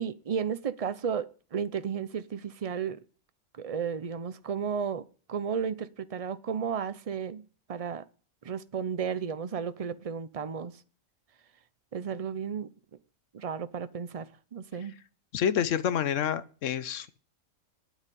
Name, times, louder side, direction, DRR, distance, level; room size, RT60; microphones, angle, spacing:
voice 1, 0.0-3.0 3.5-7.4 7.7-8.1 8.4-10.7 11.9-12.7 13.3-14.9, right 7 dB, 50° right, 0.4 m, -33 dB
voice 2, 15.3-17.2, left 9 dB, 65° left, 1.1 m, -28 dB
9.6 x 8.9 x 8.3 m
omnidirectional pair, 1.5 m